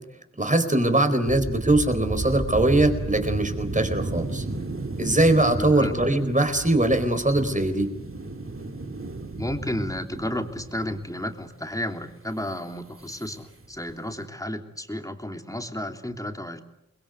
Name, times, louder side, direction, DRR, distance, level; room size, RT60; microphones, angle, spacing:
voice 1, 0.4-4.4 5.0-7.9, right 2 dB, 25° right, 8 dB, 4.3 m, -21 dB
sound 1, 1.3-11.3 12.5-12.6 13.0-13.3 13.6-14.2, right 2 dB, 45° right, 2.2 m, -33 dB
voice 2, 5.6-5.9 9.4-16.6, left 1 dB, 10° left, 5 dB, 3.0 m, -32 dB
28.5 x 22.0 x 8.2 m, 0.82 s
wide cardioid pair, 60°, 30 cm